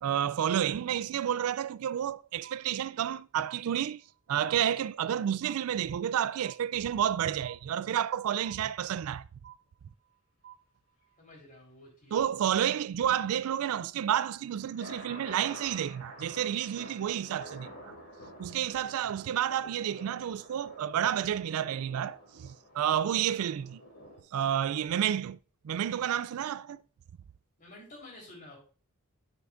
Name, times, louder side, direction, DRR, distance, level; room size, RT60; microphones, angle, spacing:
voice 1, 0.0-4.0 4.3-9.2 12.1-17.9 18.4-23.8 24.3-25.4 25.6-26.8, right 9 dB, 75° right, 0.3 m, -30 dB
sound 1, 1.4-2.1 2.4-3.2 3.4-4.2 4.4-5.2 5.4-6.2 6.4-7.2 7.4-8.2 8.4-9.2 9.4-10.2 10.4-11.2, right 11 dB, 45° right, 1.7 m, -54 dB
voice 2, 11.2-12.5 27.6-28.6, left 1 dB, 40° left, 3.6 m, -51 dB
sound 2, 14.0-24.2, equal, 60° left, 2.8 m, -49 dB
10.5 x 6.0 x 2.5 m
head